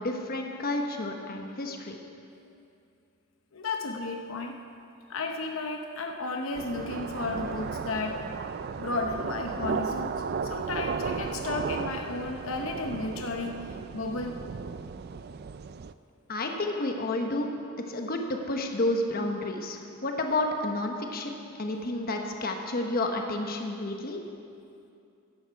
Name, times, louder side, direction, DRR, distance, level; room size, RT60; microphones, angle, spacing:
voice 1, 0.0-2.0 16.3-17.5 17.9-24.2, left 2 dB, 45° left, 3 dB, 1.1 m, -30 dB
voice 2, 3.5-4.6 5.1-8.2 8.8-10.1 10.4-14.3, left 3 dB, 80° left, 3 dB, 0.8 m, -33 dB
sound 1, 6.6-15.9, right 5 dB, 50° right, 0.4 m, -35 dB
14.5 x 11.0 x 4.7 m, 2.5 s
head